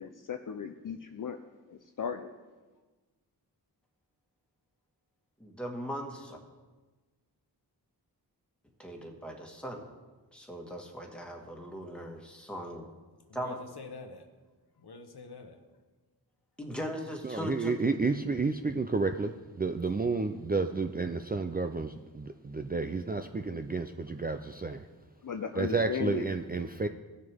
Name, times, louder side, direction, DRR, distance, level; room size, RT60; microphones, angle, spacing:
voice 1, 0.0-1.4 1.7-2.3 25.2-26.3, left 7 dB, 50° left, 6 dB, 0.6 m, -36 dB
voice 2, 5.4-6.4 8.8-9.9 10.3-12.9 13.3-13.6 16.6-17.7, equal, 5° left, 0 dB, 1.8 m, -39 dB
voice 3, 13.3-14.3 14.8-15.6 26.0-26.2, left 4 dB, 65° left, 6 dB, 1.1 m, -46 dB
voice 4, 17.2-24.9 25.6-26.9, right 4 dB, 25° right, 6 dB, 0.4 m, -31 dB
16.5 x 6.6 x 3.5 m, 1.3 s
wide cardioid pair, 60°, 41 cm